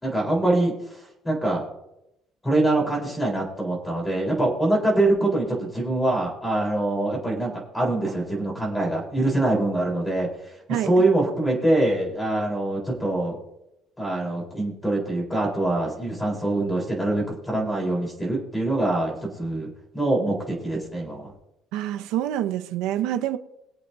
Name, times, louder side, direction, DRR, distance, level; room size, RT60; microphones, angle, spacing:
voice 1, 0.0-1.7 2.4-13.4 14.0-19.7 19.9-21.3, right 2 dB, 5° left, 4.0 m, -24 dB
voice 2, 21.7-23.4, right 12 dB, 80° right, 0.8 m, -26 dB
22.5 x 8.1 x 2.7 m
cardioid pair, 170°, 0 cm